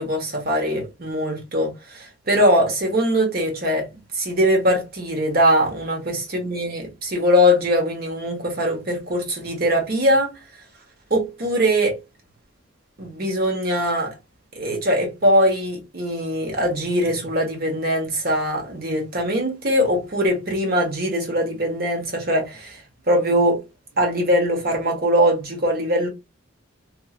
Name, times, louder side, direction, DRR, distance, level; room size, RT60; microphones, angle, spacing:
voice 1, 0.0-3.9 4.1-10.3 11.1-12.0 13.0-14.1 14.5-22.8 23.1-23.6 24.0-26.1, equal, 50° right, 1.1 m, -21 dB
3.0 x 2.6 x 2.4 m
head